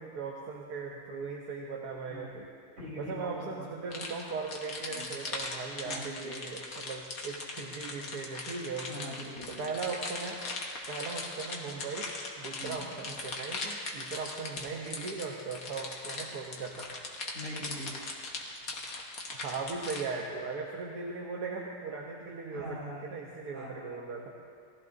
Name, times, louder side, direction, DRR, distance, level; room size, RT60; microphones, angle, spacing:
voice 1, 0.0-2.5 3.0-8.9 9.6-10.4 10.9-12.1 12.4-16.9 19.3-22.8 23.1-24.3, right 4 dB, 80° right, -1 dB, 1.5 m, -38 dB
voice 2, 2.0-2.4 2.8-3.7 4.9-5.1 5.8-6.3 8.8-9.6 12.6-12.9 17.3-17.9 22.5-23.2 23.5-24.0, equal, 55° right, -9 dB, 4.9 m, -42 dB
sound 1, 3.9-20.1, left 3 dB, 65° left, 1.7 m, -39 dB
19.0 x 15.0 x 2.7 m, 2.2 s
omnidirectional pair, 1.7 m